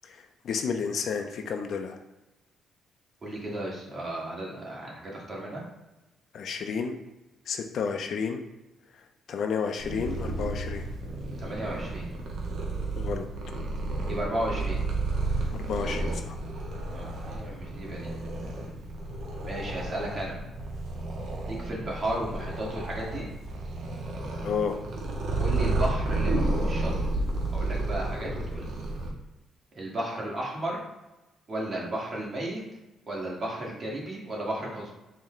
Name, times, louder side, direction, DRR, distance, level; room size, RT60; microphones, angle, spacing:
voice 1, 0.0-2.0 6.3-6.9 7.5-8.4 8.9-10.9 12.9-13.2 15.5-16.4 24.4-24.8, left 6 dB, 65° left, 6 dB, 0.4 m, -31 dB
voice 2, 3.2-5.6 11.4-12.1 14.1-14.8 16.9-18.1 19.5-20.4 21.5-23.3 25.4-26.9 27.5-28.7 29.7-30.8 31.5-32.6 33.1-34.9, right 1 dB, 45° right, -3 dB, 1.4 m, -34 dB
Purr, 9.8-29.1, right 2 dB, 70° right, 0.7 m, -31 dB
4.2 x 2.1 x 3.8 m, 1.0 s
cardioid pair, 90°, 0 cm